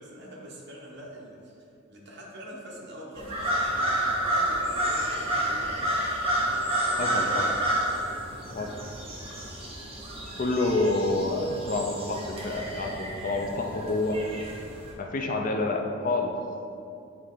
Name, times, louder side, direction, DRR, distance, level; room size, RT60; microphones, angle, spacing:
voice 1, 0.0-6.1 6.5-7.5 7.7-8.3, equal, 55° right, -3 dB, 1.1 m, -44 dB
sound 1, 3.2-14.9, right 1 dB, 30° right, 1.0 m, -30 dB
voice 2, 7.0-7.4 8.5-8.7 10.4-14.2 15.0-16.3, left 2 dB, 40° left, 2 dB, 0.5 m, -28 dB
8.1 x 3.2 x 3.8 m, 2.6 s
head